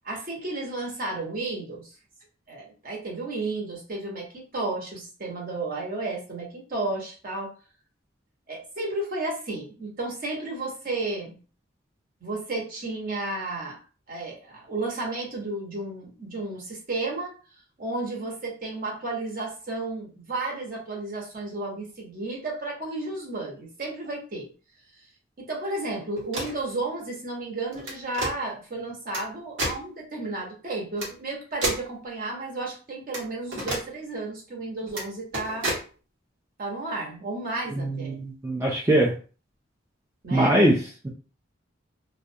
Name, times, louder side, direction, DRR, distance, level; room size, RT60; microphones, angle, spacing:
voice 1, 0.0-1.9 2.5-7.5 8.5-11.4 12.2-13.8 14.1-17.3 17.8-24.5 25.4-35.7 36.6-38.2 40.2-40.6, right 2 dB, 45° right, -1 dB, 0.8 m, -32 dB
sound 1, 26.2-26.6 27.7-28.3 29.1-29.2 29.6-29.8 31.0-31.1 31.6-31.9 33.1-33.2 33.5-33.8 34.9-35.0 35.3-35.8, right 1 dB, 75° right, 1.0 m, -30 dB
voice 2, 37.8-39.1 40.3-40.8, right 1 dB, 15° right, -3 dB, 0.3 m, -22 dB
2.3 x 2.1 x 2.6 m, 0.37 s
head